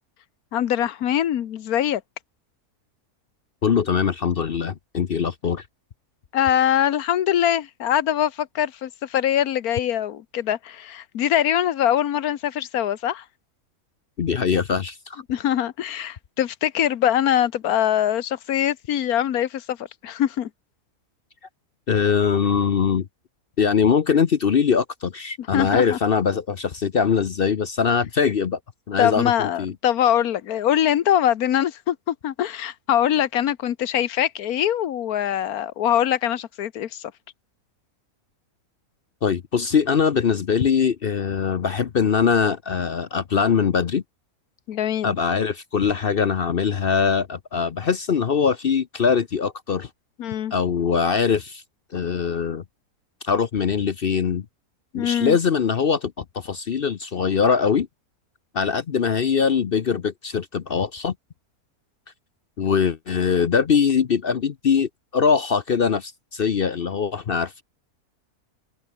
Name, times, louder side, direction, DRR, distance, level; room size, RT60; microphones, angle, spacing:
voice 1, 0.5-2.0 6.3-13.2 15.3-19.8 20.0-20.5 25.4-26.0 29.0-37.0 44.7-45.1 50.2-50.5 54.9-55.4, left 10 dB, 70° left, 1.4 m, -23 dB
voice 2, 3.6-5.6 14.2-15.2 21.9-23.1 23.6-28.6 28.9-29.7 39.2-44.0 45.0-49.9 50.5-51.6 51.9-52.6 53.2-54.5 54.9-57.9 58.5-61.1 62.6-67.6, left 6 dB, 50° left, 0.8 m, -22 dB
open air
omnidirectional pair, 1.6 m